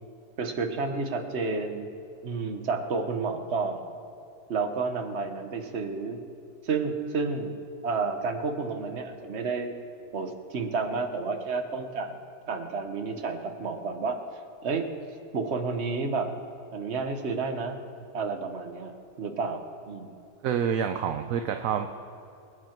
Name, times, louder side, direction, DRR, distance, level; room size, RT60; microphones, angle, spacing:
voice 1, 0.4-1.9 2.2-3.9 4.5-6.2 6.6-7.5 7.8-9.7 10.1-12.1 12.5-14.2 14.6-14.9 15.3-16.3 16.7-17.8 18.1-20.1, right 4 dB, 45° right, 6 dB, 1.3 m, -30 dB
voice 2, 20.4-21.9, right 8 dB, 65° right, 7 dB, 1.0 m, -27 dB
24.0 x 8.5 x 4.5 m, 2.7 s
omnidirectional pair, 1.6 m